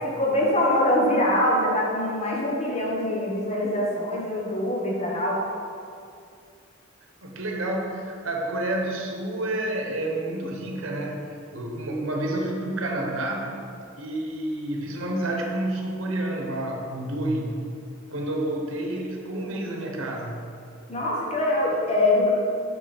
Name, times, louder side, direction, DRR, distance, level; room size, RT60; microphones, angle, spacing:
voice 1, 0.0-5.4 20.9-22.3, left 1 dB, 30° left, -3 dB, 1.1 m, -23 dB
voice 2, 7.2-13.6 14.0-17.6 18.1-20.5, right 1 dB, 80° right, 1 dB, 0.9 m, -29 dB
6.3 x 5.4 x 4.3 m, 2.4 s
head